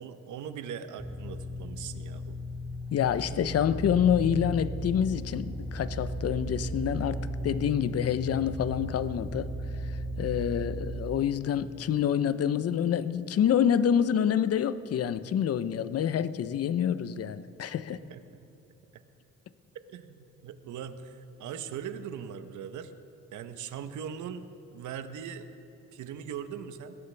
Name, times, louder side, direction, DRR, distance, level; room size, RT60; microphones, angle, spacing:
voice 1, 0.0-2.4 17.9-18.2 18.9-19.0 19.9-22.9 23.3-25.5 25.9-27.0, right 8 dB, 75° right, 10 dB, 0.9 m, -40 dB
sound 1, 1.0-11.2, equal, 5° right, 1.4 m, -36 dB
voice 2, 2.9-9.5 10.2-18.0, left 9 dB, 55° left, 14 dB, 0.7 m, -27 dB
20.0 x 16.0 x 3.4 m, 2.8 s
cardioid pair, 90°, 30 cm